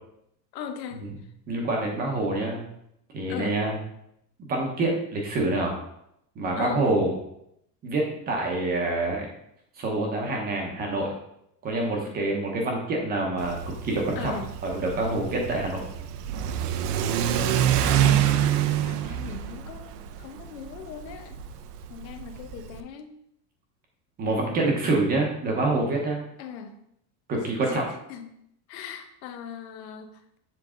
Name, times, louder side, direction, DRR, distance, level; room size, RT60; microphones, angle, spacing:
voice 1, 0.5-1.0 3.3-3.6 6.6-6.8 14.2-14.5 16.9-21.4 21.9-23.1 24.2-24.9 26.4-26.8 27.7-27.8 28.1-28.3 28.7-30.4, left 7 dB, 85° left, 7 dB, 1.0 m, -39 dB
voice 2, 1.5-2.6 3.1-3.8 4.4-5.8 6.4-7.1 7.8-9.3 9.8-11.1 11.6-13.6 13.8-14.3 14.6-15.8 24.2-26.2 27.3-27.8, right 2 dB, 20° right, 0 dB, 0.8 m, -26 dB
Car / Accelerating revving vroom, 13.4-22.8, right 10 dB, 70° right, 0.6 m, -26 dB
7.3 x 3.9 x 3.7 m, 0.76 s
supercardioid pair, 175°, 49 cm